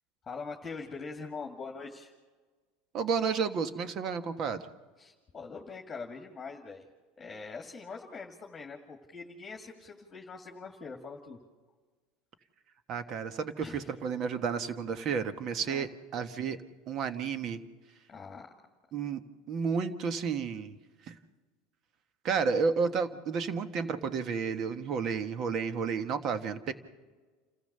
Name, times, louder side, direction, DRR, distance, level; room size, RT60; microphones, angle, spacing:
voice 1, 0.2-2.1 5.0-6.8 7.2-11.4 13.6-13.9 15.6-15.8 18.1-18.5, left 4 dB, 20° left, 1 dB, 2.0 m, -43 dB
voice 2, 2.9-4.7 12.9-16.6 16.9-17.6 18.9-19.2 19.5-20.8 21.0-21.2 22.2-26.7, right 5 dB, 45° right, 10 dB, 1.4 m, -31 dB
29.0 x 14.5 x 6.8 m, 1.4 s
supercardioid pair, 120°, 0 cm